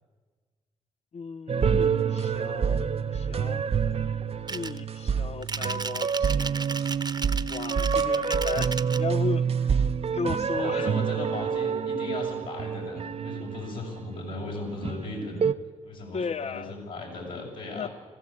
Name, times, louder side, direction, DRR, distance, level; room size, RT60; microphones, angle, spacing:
voice 1, 1.1-3.7 4.5-6.8 7.1-9.9 10.1-10.9 16.1-16.8 17.7-17.9, left 5 dB, 50° left, 0.6 m, -36 dB
sound 1, 1.5-14.2 14.6-15.5, right 6 dB, 45° right, 0.7 m, -27 dB
sound 2, 4.5-4.8 5.4-9.0, right 4 dB, 30° right, 1.1 m, -35 dB
voice 2, 10.5-15.5 15.8-17.9, left 2 dB, 75° left, 6.5 m, -37 dB
20.5 x 15.0 x 8.7 m
supercardioid pair, 55°, 14 cm